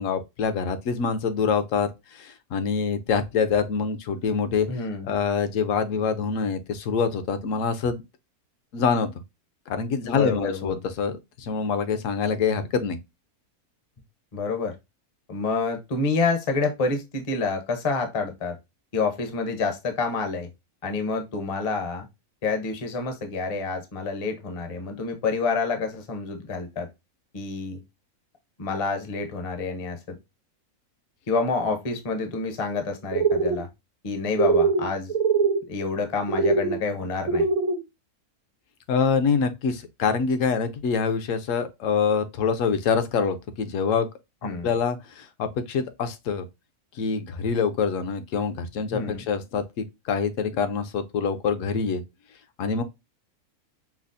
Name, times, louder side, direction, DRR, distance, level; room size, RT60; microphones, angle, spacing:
voice 1, 0.0-4.7 5.0-8.0 8.7-9.1 9.7-13.0 38.9-44.1 44.4-46.4 47.0-52.0 52.6-52.8, left 6 dB, 65° left, 0.9 m, -25 dB
voice 2, 4.7-5.2 10.0-10.7 14.3-14.7 15.3-18.6 18.9-20.5 20.8-22.1 22.4-26.9 27.3-27.8 28.6-30.2 31.3-33.7 34.0-35.1 35.7-37.5 44.4-44.7 48.9-49.2, left 4 dB, 35° left, 0.5 m, -28 dB
sound 1, 33.1-33.6 34.3-34.8 35.1-35.6 36.3-36.7 37.2-37.8, right 4 dB, 60° right, 0.9 m, -22 dB
5.7 x 2.0 x 2.5 m
omnidirectional pair, 1.6 m